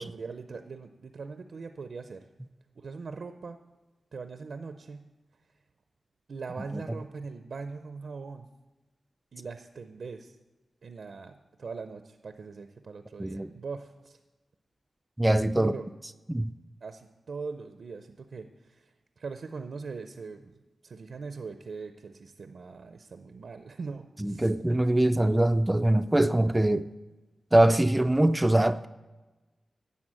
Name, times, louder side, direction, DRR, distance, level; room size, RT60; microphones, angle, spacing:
voice 1, 0.0-2.2 2.7-3.6 4.1-5.1 6.3-8.5 9.3-10.4 10.8-14.2 15.5-15.8 16.8-20.5 20.8-24.5, right 4 dB, 70° right, 0.6 m, -41 dB
voice 2, 13.2-13.5 15.2-15.7 16.3-16.5 24.2-26.9 27.5-28.9, right 1 dB, 15° right, 0.4 m, -23 dB
11.0 x 7.3 x 7.4 m
cardioid pair, 60°, 0 cm